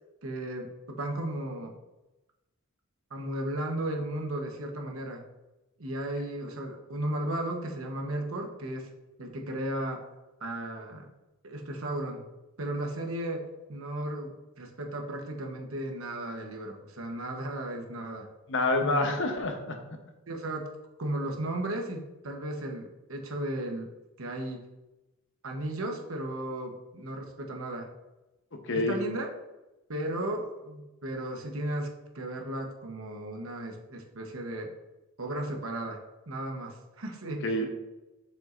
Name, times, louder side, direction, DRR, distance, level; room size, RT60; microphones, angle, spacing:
voice 1, 0.2-1.7 3.1-5.2 5.8-8.9 9.2-10.0 10.4-11.1 11.4-12.2 12.6-13.4 13.7-18.3 18.8-19.2 20.3-20.7 21.0-23.9 24.2-24.6 25.4-27.9 28.7-29.3 29.9-31.9 32.1-34.7 35.2-36.0 36.3-37.5, right 1 dB, 75° right, 3 dB, 1.0 m, -35 dB
voice 2, 18.5-19.8 28.7-29.0 37.4-37.7, left 2 dB, 60° left, 4 dB, 0.9 m, -27 dB
7.3 x 5.6 x 2.5 m, 1.0 s
head